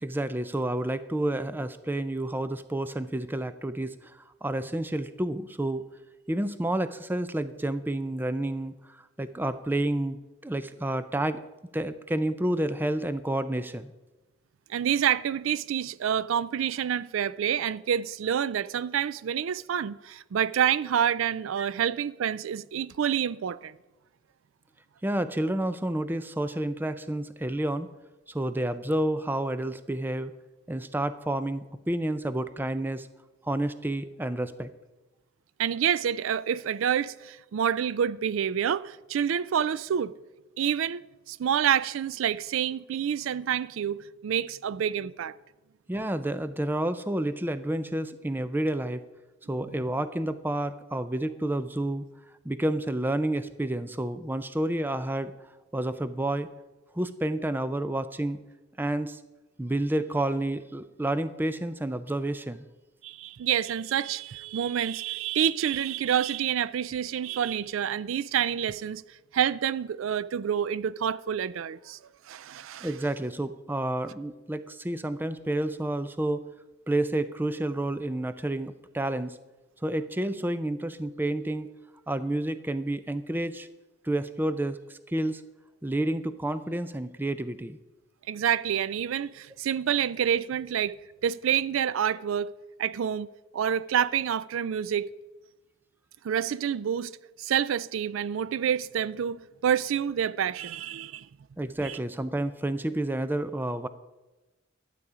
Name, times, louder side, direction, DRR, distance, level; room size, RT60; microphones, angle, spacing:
voice 1, 0.0-5.8 6.3-11.4 11.7-13.9 21.6-21.7 25.0-27.9 28.3-30.3 30.7-33.1 33.4-34.7 45.9-49.0 49.5-52.1 52.4-55.3 55.7-56.5 56.9-58.4 58.8-59.2 59.6-62.6 72.8-76.4 76.9-79.4 79.8-81.7 82.1-83.7 84.0-85.4 85.8-87.8 101.6-103.9, right 1 dB, 10° right, 0.4 m, -30 dB
voice 2, 14.7-23.8 35.6-40.1 40.6-44.0 44.2-45.3 63.0-69.0 69.3-72.0 72.3-72.9 88.3-91.0 91.2-92.5 92.8-93.3 93.5-95.1 96.2-97.1 97.4-101.3 101.8-102.0, right 8 dB, 85° right, 0.4 m, -28 dB
12.0 x 8.4 x 4.9 m
head